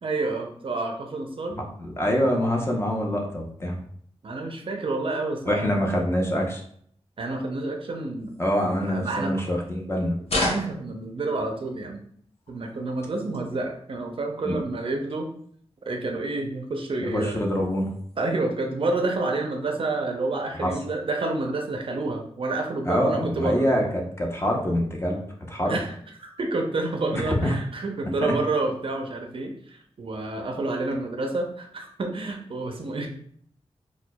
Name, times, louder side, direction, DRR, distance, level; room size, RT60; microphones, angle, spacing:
voice 1, 0.0-1.6 4.2-5.8 7.2-8.3 8.6-9.3 10.3-12.0 12.5-15.3 15.9-17.4 18.2-23.7 25.6-25.9 26.2-33.1, right 2 dB, 55° right, 3 dB, 0.5 m, -29 dB
voice 2, 1.8-3.8 5.5-6.6 8.4-10.2 14.4-14.6 17.0-17.9 20.6-20.7 22.9-25.2 25.5-25.8 27.1-27.5 28.2-28.3, equal, 20° left, -1 dB, 0.7 m, -25 dB
sound 1, 8.2-9.8 10.2-11.8 12.3-13.6 14.0-14.4 14.7-14.8 15.0-15.5 15.9-16.1 16.5-17.0 17.3-18.4, left 2 dB, 65° left, 0.7 m, -35 dB
4.4 x 2.3 x 2.2 m, 0.62 s
wide cardioid pair, 95°, 11 cm